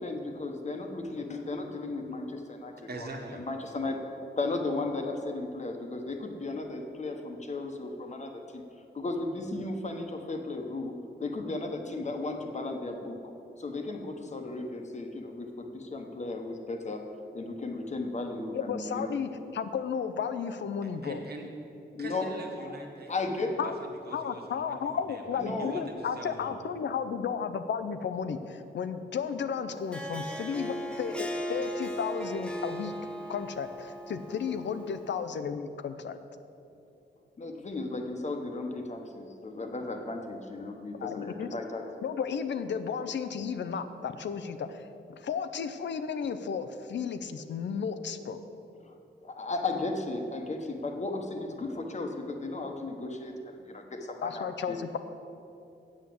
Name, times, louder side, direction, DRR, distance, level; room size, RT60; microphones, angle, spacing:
voice 1, 0.0-3.1 3.4-4.1 4.4-8.6 8.9-10.9 11.2-13.2 13.6-17.0 17.3-19.1 21.9-22.2 22.6-22.8 23.1-23.6 25.4-25.8 37.4-41.8 48.8-48.9 49.2-54.8, left 2 dB, 40° left, 4 dB, 1.0 m, -35 dB
voice 2, 2.9-3.4 21.0-21.5 22.0-26.6, right 2 dB, 60° right, 1 dB, 1.5 m, -43 dB
voice 3, 18.5-21.2 23.6-23.7 24.1-32.9 33.3-36.2 41.0-41.5 42.0-48.4 54.2-55.0, left 6 dB, 75° left, 10 dB, 0.6 m, -33 dB
Harp, 29.7-35.2, equal, 5° left, 0.7 m, -37 dB
8.1 x 7.3 x 7.6 m, 2.7 s
wide cardioid pair, 130°, 18 cm